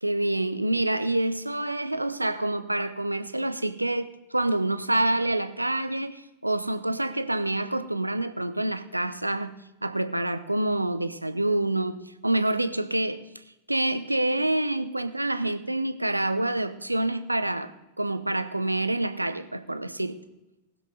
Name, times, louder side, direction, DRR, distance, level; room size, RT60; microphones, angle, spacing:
voice 1, 0.0-13.2 13.7-20.2, right 1 dB, 85° right, 0.7 m, -27 dB
20.0 x 7.5 x 4.2 m
figure-of-eight pair, 90°, 0 cm